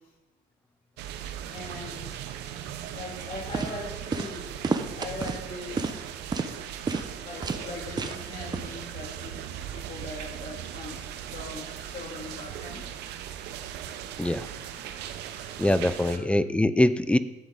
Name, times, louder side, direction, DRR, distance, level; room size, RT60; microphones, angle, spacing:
sound 1, 1.0-16.2, right 10 dB, 85° right, 0.8 m, -38 dB
voice 1, 1.5-2.2 2.9-4.5 5.0-6.1 7.2-9.4 9.7-12.9 15.8-16.3, left 2 dB, 55° left, -2 dB, 3.5 m, -40 dB
sound 2, 3.2-3.3 3.5-3.7 4.1-4.4 4.6-5.4 5.8-6.0 6.3-6.5 6.9-7.1 7.4-7.6 8.0-8.2 8.5-8.6, right 4 dB, 25° right, 0.9 m, -29 dB
voice 2, 15.6-17.2, left 1 dB, 5° left, 13 dB, 0.5 m, -23 dB
11.5 x 8.2 x 4.0 m, 1.0 s
cardioid pair, 110°, 17 cm